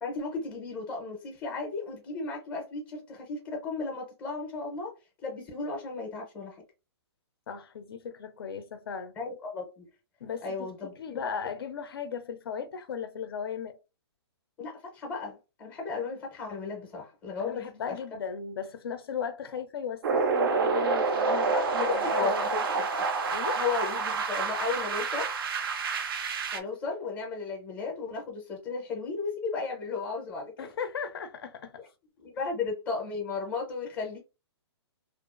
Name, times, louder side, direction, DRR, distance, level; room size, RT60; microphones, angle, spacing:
voice 1, 0.0-4.9 5.2-6.6 9.2-9.9 10.4-11.2 14.6-18.0 21.5-23.1 23.6-25.3 26.5-30.7 32.2-34.2, left 4 dB, 10° left, 0.6 m, -35 dB
voice 2, 7.5-9.2 10.2-10.7 11.0-13.8 17.4-22.9 23.3-23.6 30.6-31.8, left 7 dB, 55° left, 0.4 m, -37 dB
sound 1, 20.0-26.6, right 4 dB, 55° right, 0.5 m, -28 dB
2.4 x 2.3 x 2.4 m
hypercardioid pair, 165°, 14 cm